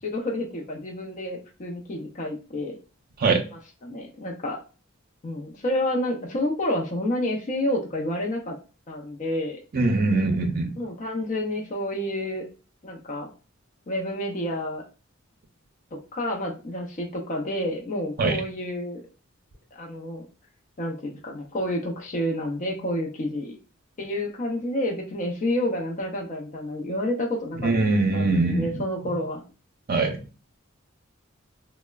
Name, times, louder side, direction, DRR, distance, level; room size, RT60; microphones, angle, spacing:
voice 1, 0.0-2.8 3.5-4.6 5.2-8.6 8.9-9.6 10.8-12.5 12.8-13.3 13.9-14.8 15.9-19.0 19.7-20.3 20.8-23.6 24.0-27.7 28.1-29.4, left 1 dB, 40° left, -1 dB, 0.5 m, -29 dB
voice 2, 9.7-10.7 18.2-18.4 27.6-28.7 29.0-29.1 29.9-30.1, right 3 dB, 50° right, 5 dB, 0.5 m, -22 dB
3.1 x 2.0 x 2.2 m, 0.34 s
head